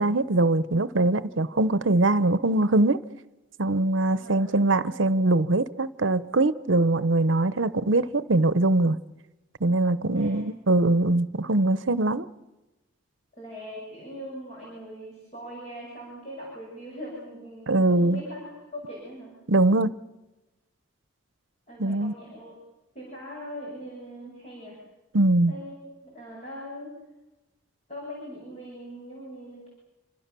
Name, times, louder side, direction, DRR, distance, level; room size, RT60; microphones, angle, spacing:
voice 1, 0.0-3.0 3.6-9.0 9.6-12.3 17.7-18.2 19.5-19.9 21.8-22.1 25.1-25.5, right 2 dB, 75° right, 0.9 m, -22 dB
voice 2, 10.1-10.5 13.4-19.3 21.7-22.6 22.9-24.8 25.5-27.0 27.9-29.7, equal, 30° left, 7.5 m, -41 dB
27.5 x 26.0 x 6.9 m
head